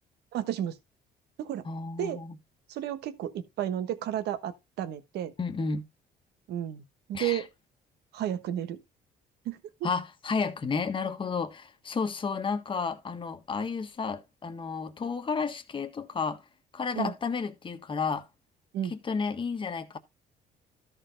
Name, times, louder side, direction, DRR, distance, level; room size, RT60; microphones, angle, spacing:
voice 1, 0.3-0.8 1.4-1.7 2.0-2.2 2.7-5.3 6.5-6.8 7.1-7.5 8.1-8.8 9.4-9.9 16.9-17.1 18.7-18.9, right 11 dB, 75° right, 1.3 m, -32 dB
voice 2, 1.6-2.3 5.4-5.9 7.1-7.4 9.8-16.4 16.7-18.3 18.8-20.0, left 5 dB, 30° left, 1.4 m, -32 dB
13.5 x 4.6 x 3.9 m
cardioid pair, 110°, 17 cm